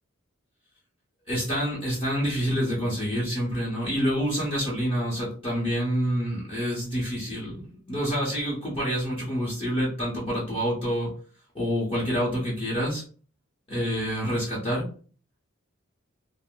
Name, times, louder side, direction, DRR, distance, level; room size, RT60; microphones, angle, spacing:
voice 1, 1.3-11.1 11.5-13.0 13.7-14.9, equal, 30° left, -5 dB, 0.9 m, -27 dB
2.6 x 2.1 x 3.6 m, 0.40 s
head